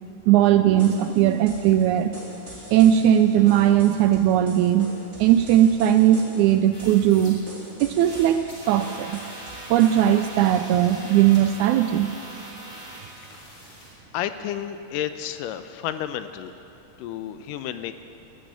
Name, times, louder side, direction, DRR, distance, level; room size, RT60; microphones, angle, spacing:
voice 1, 0.3-2.1 2.7-4.9 5.2-7.4 7.8-9.2 9.7-12.1, right 11 dB, 80° right, 9 dB, 1.7 m, -18 dB
sound 1, 0.8-10.1, equal, 20° right, 3.2 m, -44 dB
sound 2, 6.7-7.7 8.0-13.9, right 1 dB, 30° left, 4.2 m, -41 dB
voice 2, 14.1-16.5 17.0-17.9, left 11 dB, 85° left, 11 dB, 2.3 m, -31 dB
12.5 x 12.0 x 9.3 m, 2.6 s
omnidirectional pair, 3.8 m